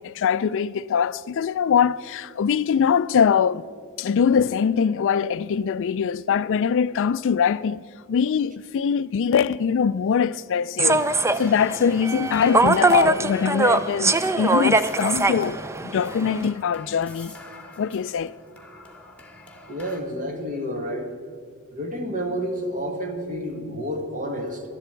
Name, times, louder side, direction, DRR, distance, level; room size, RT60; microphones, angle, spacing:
voice 1, 0.0-3.6 4.0-7.8 8.1-11.0 11.4-17.3 17.8-18.3, left 7 dB, 60° left, 0.3 m, -22 dB
Human voice / Subway metro underground, 10.8-16.5, right 3 dB, 15° right, 0.4 m, -22 dB
sound 1, 10.9-20.0, left 2 dB, 5° left, 1.8 m, -46 dB
voice 2, 19.7-21.1 21.7-24.6, equal, 40° right, 1.8 m, -30 dB
18.5 x 12.5 x 4.5 m
head